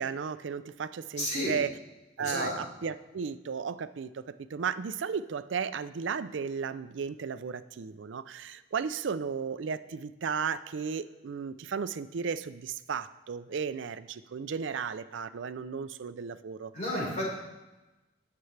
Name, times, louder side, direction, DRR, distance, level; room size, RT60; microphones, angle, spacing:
voice 1, 0.0-1.7 2.2-4.2 4.5-16.7, right 6 dB, 75° right, 13 dB, 0.4 m, -34 dB
voice 2, 1.2-1.5 2.2-2.5 16.7-17.3, left 1 dB, 40° left, -5 dB, 4.2 m, -31 dB
18.0 x 6.8 x 3.3 m, 1.1 s
head